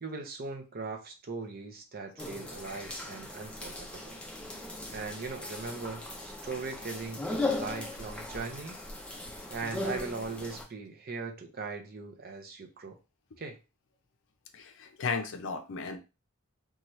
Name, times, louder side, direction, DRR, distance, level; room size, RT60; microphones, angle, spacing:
voice 1, 0.0-4.2 4.9-8.7 9.5-13.0 13.4-13.6, right 4 dB, 45° right, 3 dB, 0.6 m, -39 dB
sound 1, 2.2-10.6, left 2 dB, 5° left, 0.5 m, -38 dB
voice 2, 14.5-16.0, left 5 dB, 60° left, 6 dB, 0.5 m, -35 dB
2.8 x 2.3 x 3.0 m, 0.29 s
head